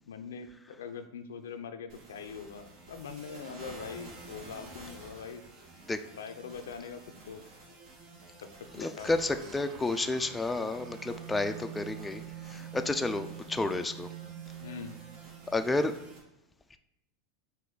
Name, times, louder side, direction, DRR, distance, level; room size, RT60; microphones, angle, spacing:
voice 1, 0.1-5.4 6.2-7.4 8.6-9.1 9.4-9.5 14.6-15.0, left 6 dB, 80° left, 8 dB, 0.4 m, -43 dB
sound 1, 1.9-16.2, right 2 dB, 60° right, 1.5 m, -51 dB
voice 2, 8.8-12.2 12.5-14.1 15.5-15.9, left 2 dB, 15° left, 8 dB, 0.3 m, -31 dB
sound 2, 9.0-15.9, right 10 dB, 45° right, 0.6 m, -46 dB
5.1 x 2.6 x 3.8 m, 0.86 s
hypercardioid pair, 95°, 0 cm